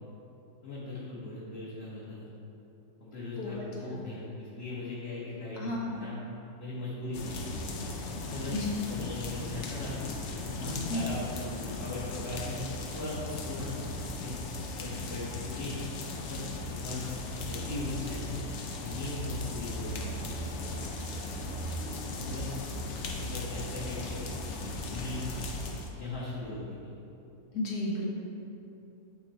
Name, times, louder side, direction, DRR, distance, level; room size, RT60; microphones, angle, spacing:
voice 1, 0.6-2.3 3.0-6.2 6.6-7.7 8.3-8.5 8.8-10.0 10.4-12.6 12.9-13.8 14.2-14.4 14.8-15.8 16.2-16.4 16.7-18.4 18.8-19.9 22.3-22.6 23.1-25.5 25.9-26.9, left 2 dB, 45° left, -10 dB, 1.5 m, -39 dB
voice 2, 5.6-6.1 8.5-8.8 10.9-11.0 27.5-28.1, left 1 dB, 75° left, -4 dB, 1.7 m, -33 dB
sound 1, 7.1-25.9, left 2 dB, 60° left, 0.8 m, -37 dB
9.8 x 3.4 x 4.2 m, 2.8 s
omnidirectional pair, 1.7 m